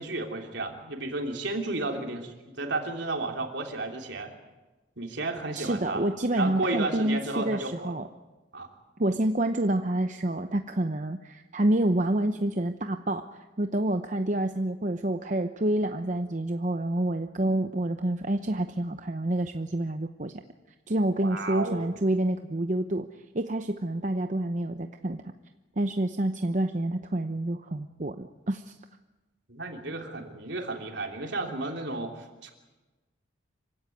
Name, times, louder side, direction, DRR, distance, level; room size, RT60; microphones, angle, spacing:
voice 1, 0.0-4.3 5.0-6.1 6.4-7.9 8.5-8.7 21.2-22.0 29.5-32.5, right 2 dB, 65° right, 3 dB, 3.3 m, -33 dB
voice 2, 5.5-8.1 9.0-20.3 20.9-23.1 23.3-25.2 25.8-28.8, right 1 dB, 40° right, 7 dB, 0.8 m, -28 dB
26.0 x 16.0 x 9.4 m, 1.2 s
head